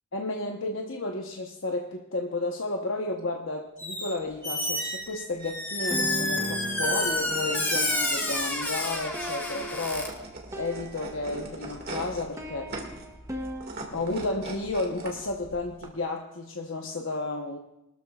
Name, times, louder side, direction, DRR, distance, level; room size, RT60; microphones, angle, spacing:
voice 1, 0.1-10.2 10.5-12.7 13.9-17.6, left 2 dB, 65° left, 1 dB, 1.1 m, -32 dB
Squeak, 3.8-4.1 4.4-10.1, left 1 dB, 10° left, 1.7 m, -29 dB
sound 1, 3.9-15.8, right 2 dB, 45° right, 2.1 m, -43 dB
sound 2, 5.9-11.7 11.9-13.7, right 1 dB, 15° right, 1.0 m, -38 dB
22.0 x 13.5 x 2.4 m, 0.84 s
head